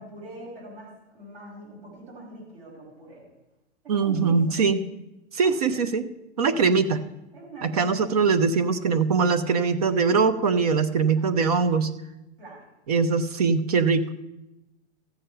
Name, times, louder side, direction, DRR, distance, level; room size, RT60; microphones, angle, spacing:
voice 1, 0.0-3.2 3.9-4.6 5.4-5.9 6.4-6.8 7.3-8.0 11.1-11.3 12.4-12.6, right 1 dB, 60° right, -5 dB, 5.5 m, -43 dB
voice 2, 3.9-4.8 5.3-6.0 6.4-7.0 7.6-11.9 12.9-14.1, right 5 dB, 35° right, 13 dB, 0.6 m, -22 dB
14.5 x 7.3 x 5.6 m, 0.99 s
hypercardioid pair, 175°, 35 cm